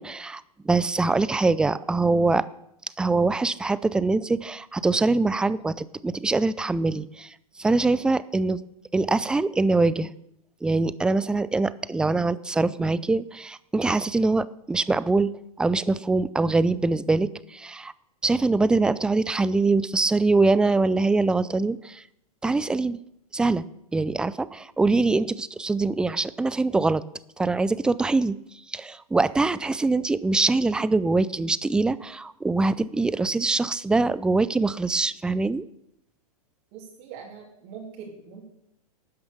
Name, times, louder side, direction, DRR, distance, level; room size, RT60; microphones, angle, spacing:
voice 1, 0.0-2.5 3.0-7.3 7.6-8.6 8.9-10.1 10.6-15.3 15.6-17.9 18.2-22.0 22.4-23.0 23.3-23.6 23.9-27.0 27.4-28.4 28.7-35.7, right 3 dB, 5° right, 17 dB, 0.4 m, -23 dB
voice 2, 36.7-38.5, right 6 dB, 45° right, -2 dB, 3.0 m, -42 dB
12.5 x 9.5 x 6.8 m, 0.78 s
figure-of-eight pair, 105°, 19 cm